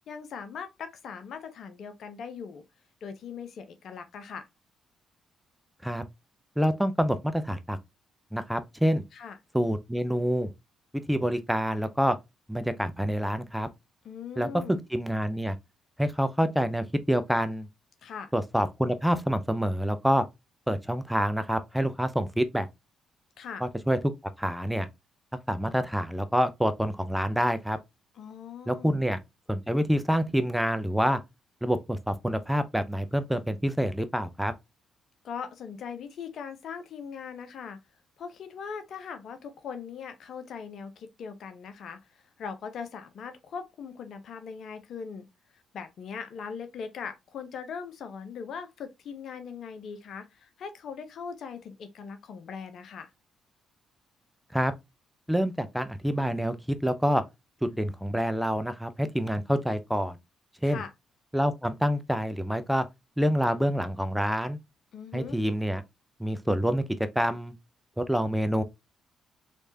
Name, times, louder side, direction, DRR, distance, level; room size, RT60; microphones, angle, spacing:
voice 1, 0.1-2.6 3.0-4.5 9.1-9.4 14.0-14.8 18.0-18.3 23.4-23.6 28.2-29.0 35.2-37.8 38.2-45.3 45.7-53.1 60.6-60.9 64.9-65.4, left 6 dB, 65° left, 0.7 m, -40 dB
voice 2, 6.6-7.8 8.3-9.0 9.5-10.5 11.1-12.2 12.5-13.7 14.4-14.5 14.9-15.6 16.0-17.7 18.3-20.2 20.7-22.7 23.6-24.0 24.4-24.9 25.5-27.8 28.7-29.2 29.5-31.2 31.6-34.5 54.5-54.7 55.3-56.6 56.8-57.2 57.6-60.2 60.6-60.8 61.3-62.9 63.2-64.6 65.1-65.8 66.2-66.8 67.2-67.5 68.0-68.6, equal, ahead, 0.6 m, -27 dB
3.4 x 3.2 x 2.6 m
hypercardioid pair, 50°, 0 cm